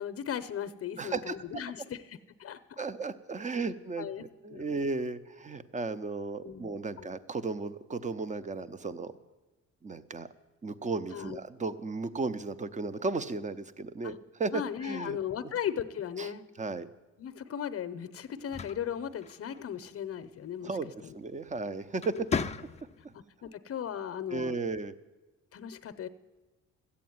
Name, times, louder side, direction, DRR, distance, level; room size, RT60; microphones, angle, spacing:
voice 1, 0.0-2.8 4.0-4.2 4.5-4.7 6.4-6.7 7.0-7.1 11.1-11.4 14.0-14.1 14.5-16.4 17.2-20.7 21.0-21.1 22.1-22.2 23.4-24.6 25.5-26.1, left 9 dB, 50° left, 12 dB, 0.7 m, -37 dB
voice 2, 1.0-1.4 2.8-9.1 9.8-10.3 10.6-15.5 16.2-16.3 16.6-16.9 20.6-20.9 21.1-22.1 24.3-24.9, right 3 dB, 25° right, 14 dB, 0.7 m, -35 dB
sound 1, 18.3-19.8 21.3-21.6 22.0-23.1, left 5 dB, 20° left, 0.5 m, -36 dB
13.5 x 8.4 x 9.4 m, 1.2 s
cardioid pair, 90°, 30 cm